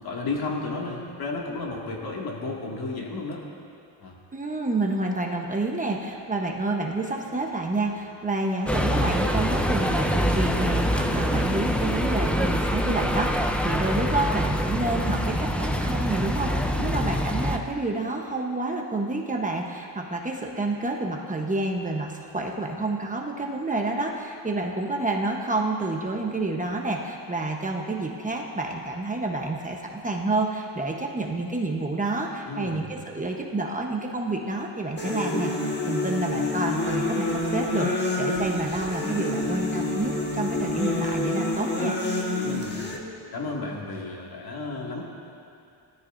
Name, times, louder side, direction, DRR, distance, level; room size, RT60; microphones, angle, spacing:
voice 1, 0.0-3.4 4.0-4.2 16.7-17.2 32.4-32.9 42.4-42.8 43.3-45.0, left 3 dB, 50° left, -2 dB, 2.3 m, -33 dB
voice 2, 4.3-35.5 35.9-41.9, right 2 dB, 15° right, 0 dB, 1.1 m, -29 dB
sound 1, 8.7-17.6, equal, 5° left, 0.6 m, -25 dB
sound 2, 35.0-43.0, left 2 dB, 20° left, 1.6 m, -27 dB
19.0 x 13.5 x 2.7 m, 2.6 s
cardioid pair, 120°, 47 cm